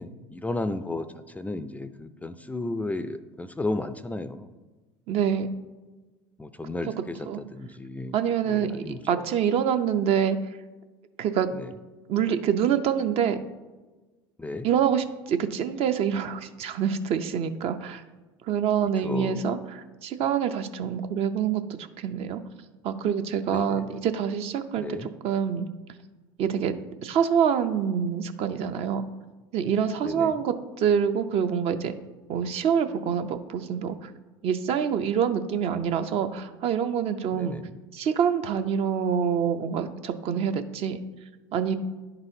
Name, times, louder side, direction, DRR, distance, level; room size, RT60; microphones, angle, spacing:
voice 1, 0.0-4.5 6.4-8.2 8.5-9.2 11.5-11.7 14.4-14.7 19.0-19.5 23.5-23.9 24.8-25.1 30.0-30.4 37.3-37.8, left 2 dB, 10° left, 12 dB, 0.3 m, -34 dB
voice 2, 5.1-5.5 7.3-7.4 8.1-10.4 11.2-11.5 12.1-13.4 14.6-18.0 18.5-22.4 22.8-25.7 26.4-26.7 27.0-29.1 29.5-31.9 32.3-34.1 34.4-37.6 37.9-41.0 41.5-41.8, right 8 dB, 50° right, 8 dB, 0.5 m, -26 dB
10.5 x 4.0 x 2.7 m, 1.2 s
hypercardioid pair, 75°, 13 cm